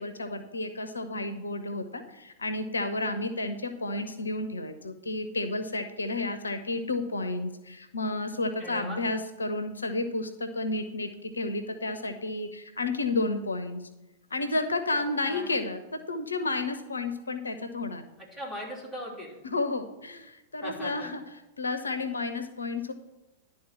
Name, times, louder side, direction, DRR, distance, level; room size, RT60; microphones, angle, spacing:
voice 1, 0.0-13.8 14.3-18.0 19.4-21.2 21.6-22.9, left 2 dB, 75° left, 9 dB, 0.6 m, -31 dB
voice 2, 8.6-9.0 15.3-15.5 18.3-19.4 20.6-21.1, equal, 5° right, -5 dB, 3.2 m, -39 dB
11.0 x 3.8 x 7.5 m, 0.96 s
figure-of-eight pair, 100°, 0 cm